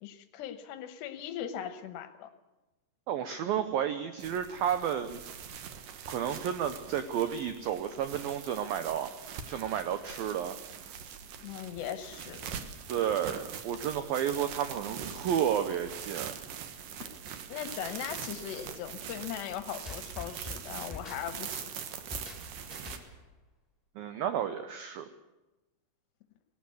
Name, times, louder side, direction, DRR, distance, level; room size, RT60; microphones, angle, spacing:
voice 1, 0.0-2.3 11.4-12.4 17.5-21.7, left 10 dB, 75° left, 10 dB, 2.9 m, -39 dB
voice 2, 3.1-5.2 6.1-9.1 9.5-10.6 12.9-16.4 24.0-25.1, right 9 dB, 85° right, 10 dB, 2.1 m, -31 dB
sound 1, 4.2-23.0, right 8 dB, 65° right, 2.3 m, -43 dB
sound 2, 19.8-23.3, left 3 dB, 10° left, 3.8 m, -45 dB
18.5 x 18.0 x 8.3 m, 1.0 s
omnidirectional pair, 5.4 m